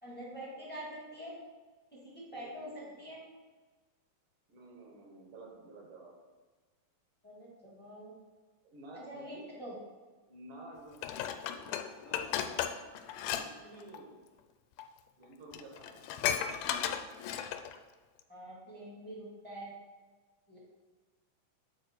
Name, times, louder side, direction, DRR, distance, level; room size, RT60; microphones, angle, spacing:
voice 1, 0.0-1.3 1.9-3.2 7.2-8.1 8.9-9.8 18.3-19.7 20.5-20.6, right 1 dB, 5° left, -6 dB, 1.2 m, -45 dB
voice 2, 2.3-3.1 4.5-6.1 8.6-9.5 10.3-11.3 11.9-12.6 13.3-14.2 15.2-16.0, right 2 dB, 80° right, -1 dB, 3.1 m, -52 dB
Dishes pots and pans, 11.0-13.5 13.7-14.0 14.8-14.9 15.2-15.3 15.5-17.8 18.2-18.3, left 9 dB, 90° left, 2.1 m, -35 dB
8.8 x 4.5 x 4.5 m, 1.3 s
omnidirectional pair, 3.6 m